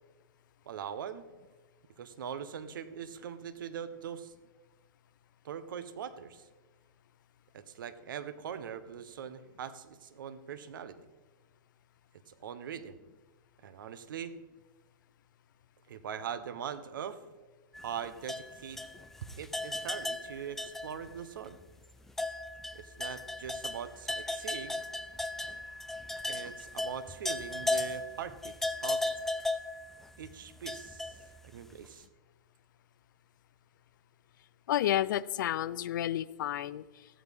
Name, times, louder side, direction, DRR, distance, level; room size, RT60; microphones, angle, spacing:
voice 1, 0.7-1.3 2.0-4.3 5.4-6.4 7.5-11.0 12.3-13.0 13.6-14.3 15.9-17.2 17.8-18.8 19.4-21.6 22.7-24.8 26.3-28.6 28.8-29.0 30.2-31.2 31.4-32.1, right 8 dB, 75° right, 13 dB, 1.0 m, -41 dB
sound 1, 17.7-21.2 21.5-21.6 22.1-31.7, left 2 dB, 5° left, 0.5 m, -36 dB
voice 2, 34.7-37.1, left 12 dB, 70° left, 19 dB, 0.5 m, -31 dB
15.0 x 12.5 x 3.6 m, 1.3 s
hypercardioid pair, 140°, 11 cm